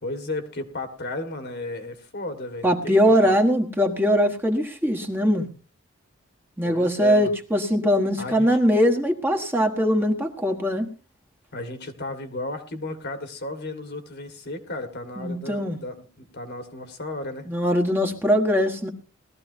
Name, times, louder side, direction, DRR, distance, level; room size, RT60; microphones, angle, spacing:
voice 1, 0.0-3.3 6.6-7.3 8.2-8.5 11.5-17.5, left 2 dB, 55° left, 7 dB, 1.9 m, -34 dB
voice 2, 2.6-5.5 6.6-10.9 15.2-15.8 17.5-18.9, equal, 10° right, 2 dB, 1.4 m, -21 dB
20.0 x 13.5 x 2.7 m, 0.33 s
head